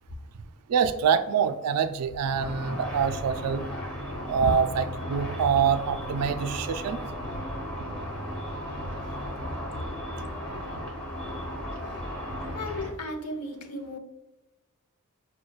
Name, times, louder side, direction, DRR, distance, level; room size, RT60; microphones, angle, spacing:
voice 1, 0.7-3.6 4.3-7.0, right 6 dB, 85° right, 11 dB, 0.3 m, -25 dB
Car / Traffic noise roadway noise / Engine, 2.4-12.9, equal, 5° left, 1.4 m, -35 dB
voice 2, 12.5-14.0, left 1 dB, 90° left, 4 dB, 0.7 m, -35 dB
6.3 x 2.2 x 2.3 m, 1.1 s
head